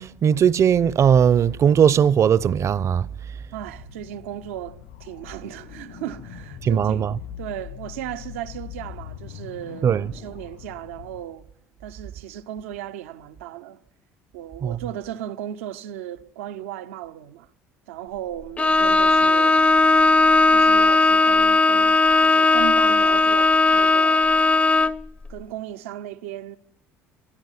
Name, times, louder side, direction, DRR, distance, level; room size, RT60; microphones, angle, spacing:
voice 1, 0.0-3.1 6.6-7.1 9.8-10.1 14.6-14.8, right 8 dB, 45° right, 0.7 m, -18 dB
voice 2, 3.5-7.1 7.4-11.5 11.8-13.8 14.3-17.5 17.9-19.6 20.5-24.3 25.3-26.6, right 11 dB, 85° right, 0.9 m, -36 dB
sound 1, 3.6-11.2, left 9 dB, 90° left, 6.4 m, -41 dB
Bowed string instrument, 18.6-25.1, left 3 dB, 20° left, 0.6 m, -17 dB
23.0 x 12.0 x 10.0 m
hypercardioid pair, 70°, 7 cm